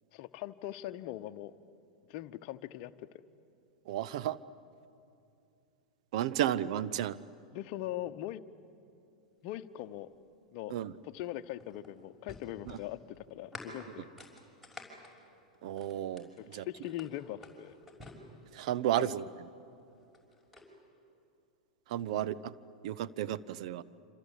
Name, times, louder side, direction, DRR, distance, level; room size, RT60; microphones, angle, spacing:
voice 1, 0.1-1.5 2.1-3.1 7.5-8.4 9.4-10.1 10.5-10.7 11.0-14.1 16.5-17.8 19.0-19.1 22.1-22.3, left 14 dB, 45° left, 10 dB, 1.0 m, -41 dB
voice 2, 3.9-4.4 6.1-7.2 10.7-10.9 12.7-12.8 15.6-16.7 18.5-19.2 21.9-22.5 22.8-23.8, right 12 dB, 55° right, 17 dB, 0.8 m, -33 dB
sound 1, 11.1-16.4 16.8-18.9 19.9-20.7, left 2 dB, ahead, 5.9 m, -51 dB
26.5 x 26.5 x 8.4 m, 2.6 s
figure-of-eight pair, 95°, 4 cm